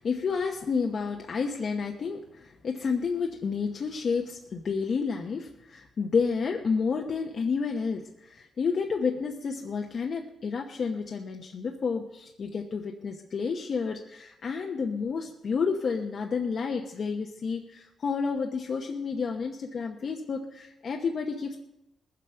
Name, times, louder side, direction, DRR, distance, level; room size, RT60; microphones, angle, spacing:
voice 1, 0.0-21.6, left 5 dB, 50° left, 2 dB, 0.9 m, -30 dB
20.0 x 7.7 x 5.7 m, 0.89 s
cardioid pair, 125°, 0 cm